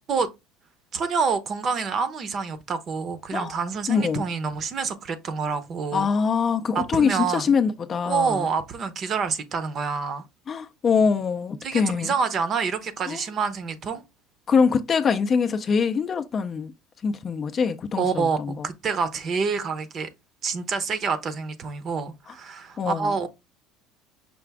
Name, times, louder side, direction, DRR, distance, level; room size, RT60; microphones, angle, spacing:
voice 1, 0.9-6.1 6.7-7.5 8.1-10.2 11.6-14.0 18.0-20.1 20.4-23.3, right 5 dB, 35° right, 0.7 m, -27 dB
voice 2, 3.9-4.2 5.9-8.5 10.5-12.1 13.1-13.2 14.5-16.7 17.0-18.7 22.3-22.4 22.8-23.2, left 5 dB, 30° left, 0.4 m, -24 dB
5.8 x 2.4 x 3.4 m
cardioid pair, 145°, 0 cm